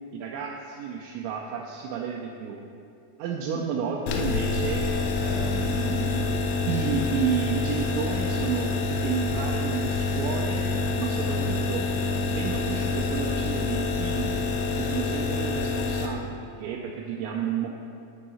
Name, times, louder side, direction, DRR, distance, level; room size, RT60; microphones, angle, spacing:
voice 1, 0.1-2.6 3.2-4.9 5.2-6.3 6.7-10.7 11.0-11.9 12.4-14.5 14.8-17.7, right 7 dB, 85° right, -1 dB, 2.7 m, -31 dB
sound 1, 4.1-16.1, left 3 dB, 80° left, 3.0 m, -27 dB
13.0 x 4.7 x 4.2 m, 2.5 s
omnidirectional pair, 5.8 m